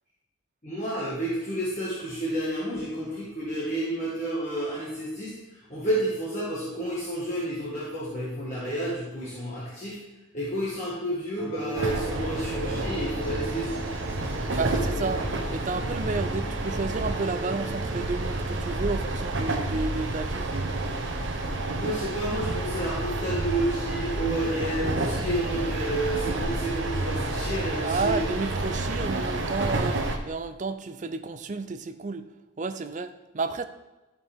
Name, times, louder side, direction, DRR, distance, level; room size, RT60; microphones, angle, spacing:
voice 1, 0.6-5.3 5.7-10.0 10.3-13.8 14.5-14.8 21.8-28.2, right 1 dB, 35° left, -8 dB, 1.8 m, -30 dB
sound 1, 11.4-18.5, right 2 dB, 5° left, 0.9 m, -40 dB
sound 2, 11.8-30.2, right 2 dB, 70° right, 0.9 m, -30 dB
voice 2, 14.6-15.2 15.5-20.7 27.8-32.3 32.6-33.6, right 3 dB, 40° right, 10 dB, 0.5 m, -31 dB
12.0 x 5.1 x 3.6 m, 1.1 s
head